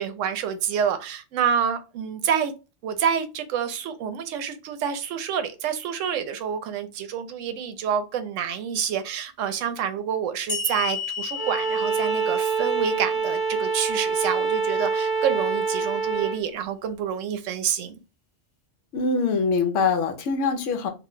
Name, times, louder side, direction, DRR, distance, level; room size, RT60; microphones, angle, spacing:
voice 1, 0.0-2.5 2.8-17.9, right 8 dB, 80° right, 0.9 m, -28 dB
sound 1, 10.5-13.9, left 5 dB, 35° left, 0.7 m, -34 dB
Bowed string instrument, 11.4-16.4, right 4 dB, 35° right, 1.0 m, -25 dB
voice 2, 18.9-20.9, left 4 dB, 75° left, 1.0 m, -23 dB
2.6 x 2.1 x 3.6 m
omnidirectional pair, 1.3 m